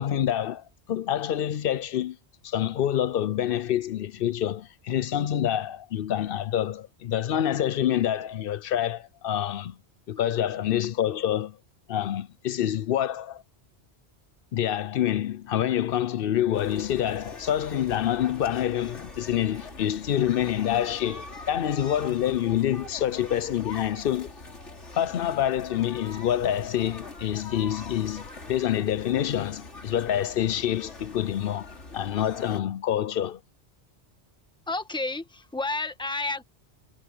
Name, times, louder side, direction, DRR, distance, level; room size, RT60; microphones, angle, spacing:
voice 1, 0.0-2.2 2.4-9.8 10.1-11.6 11.9-13.4 14.5-24.3 25.0-31.7 31.9-33.4, left 11 dB, 60° left, 0.7 m, -27 dB
sound 1, 16.5-32.6, left 3 dB, 90° left, 3.7 m, -43 dB
voice 2, 34.7-36.4, left 2 dB, 5° left, 1.2 m, -30 dB
omnidirectional pair, 1.2 m